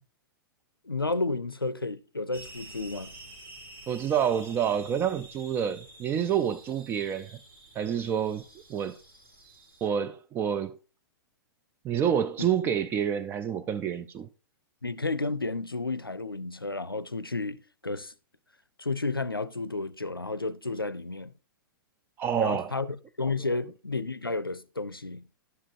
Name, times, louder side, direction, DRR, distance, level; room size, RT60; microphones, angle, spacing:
voice 1, 0.9-3.1 14.8-18.1 18.8-21.3 22.3-25.3, left 3 dB, 90° left, 0.5 m, -32 dB
sound 1, 2.3-9.9, right 2 dB, 85° right, 2.6 m, -50 dB
voice 2, 3.9-7.4 7.7-8.4 8.7-9.0 9.8-10.8 11.8-14.3 22.2-22.7, right 8 dB, 20° right, 0.4 m, -28 dB
11.0 x 7.4 x 2.6 m
figure-of-eight pair, 105°, 12 cm